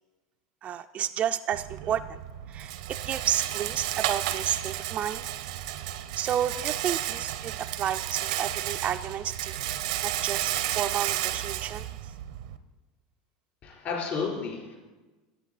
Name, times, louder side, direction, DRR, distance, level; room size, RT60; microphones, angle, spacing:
voice 1, 0.6-2.0 2.5-2.7 3.0-5.2 6.2-9.6 10.0-12.1, right 10 dB, 35° right, 8 dB, 0.3 m, -31 dB
Rattle, 1.5-12.6, right 13 dB, 75° right, 0.6 m, -32 dB
voice 2, 13.6-14.8, left 5 dB, 45° left, -1 dB, 3.8 m, -32 dB
10.5 x 8.1 x 4.1 m, 1.2 s
supercardioid pair, 105°, 4 cm